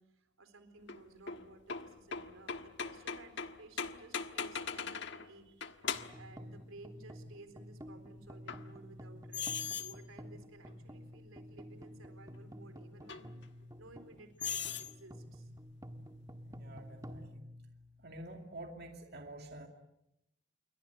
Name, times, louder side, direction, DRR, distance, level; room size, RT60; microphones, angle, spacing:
voice 1, 0.0-13.3 13.8-15.5, right 2 dB, 85° right, 9 dB, 4.1 m, -56 dB
sound 1, 0.9-5.3 5.6-6.3 8.5-8.6 9.3-10.0 10.7-10.8 13.1-13.2 14.4-15.0, left 6 dB, 60° left, 1.4 m, -39 dB
sound 2, 5.9-18.3, equal, 15° right, 1.6 m, -51 dB
voice 2, 16.4-17.5 18.0-19.7, right 1 dB, 55° right, 3 dB, 2.4 m, -48 dB
28.5 x 23.0 x 8.1 m, 0.86 s
head